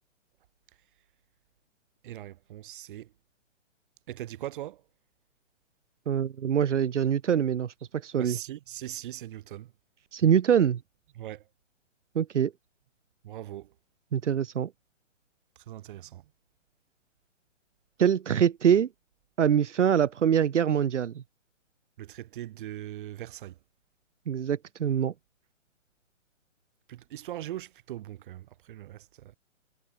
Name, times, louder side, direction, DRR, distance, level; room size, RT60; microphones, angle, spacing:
voice 1, 2.0-3.1 4.1-4.8 8.1-9.7 11.2-11.4 13.2-13.7 15.6-16.2 22.0-23.6 26.9-29.4, right 13 dB, 45° right, 2.1 m, -40 dB
voice 2, 6.1-7.7 8.0-8.4 10.1-10.8 12.1-12.5 14.1-14.7 18.0-18.9 19.4-21.2 24.3-25.1, right 8 dB, 70° right, 1.5 m, -24 dB
hypercardioid pair, 145°, 38 cm